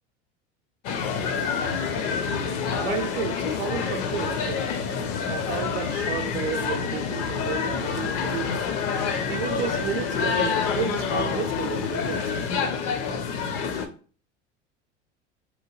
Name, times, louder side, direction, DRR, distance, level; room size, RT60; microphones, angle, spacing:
sound 1, 0.8-13.9, left 6 dB, 50° left, 0.6 m, -27 dB
voice 1, 2.8-4.6 5.3-8.5 9.3-12.2, right 7 dB, 75° right, 0.6 m, -32 dB
3.0 x 2.2 x 3.0 m
hypercardioid pair, 80°, 35 cm